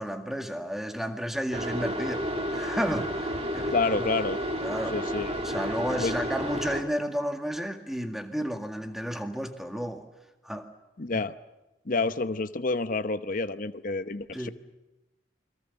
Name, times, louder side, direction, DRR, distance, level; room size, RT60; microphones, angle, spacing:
voice 1, 0.0-3.7 4.6-5.0 5.4-10.1 10.4-10.7 11.1-11.2 14.3-14.5, equal, ahead, 5 dB, 1.9 m, -32 dB
sound 1, 1.5-6.8, equal, 30° right, 2.3 m, -31 dB
voice 2, 3.7-4.4 4.9-5.4 5.9-6.1 11.0-11.3 11.8-14.5, left 3 dB, 45° left, 11 dB, 0.9 m, -29 dB
28.5 x 22.5 x 7.1 m, 1.0 s
head